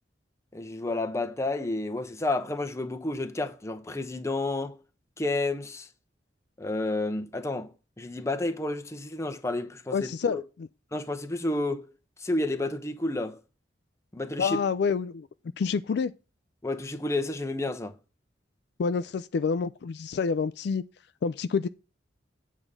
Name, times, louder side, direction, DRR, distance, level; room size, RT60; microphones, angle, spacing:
voice 1, 0.5-4.8 5.2-5.9 6.6-7.7 8.0-10.4 10.9-11.9 12.2-13.4 14.1-14.6 16.6-17.9, left 2 dB, 15° left, 0.8 m, -30 dB
voice 2, 9.9-10.7 14.4-15.3 15.6-16.1 18.8-20.8 21.2-21.7, left 5 dB, 65° left, 0.4 m, -28 dB
8.1 x 3.7 x 6.6 m
head